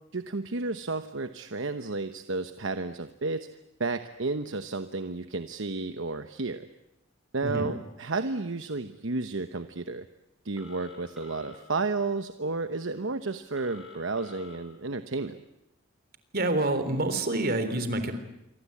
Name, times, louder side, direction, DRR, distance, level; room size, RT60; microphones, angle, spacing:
voice 1, 0.1-3.5 3.8-6.7 7.3-10.0 10.4-15.4, right 3 dB, 65° right, 9 dB, 1.1 m, -32 dB
Telephone, 10.6-11.6 13.5-14.6, left 5 dB, ahead, 7.4 m, -47 dB
voice 2, 16.3-18.1, right 2 dB, 50° right, 9 dB, 3.5 m, -27 dB
27.0 x 24.5 x 8.6 m, 0.85 s
head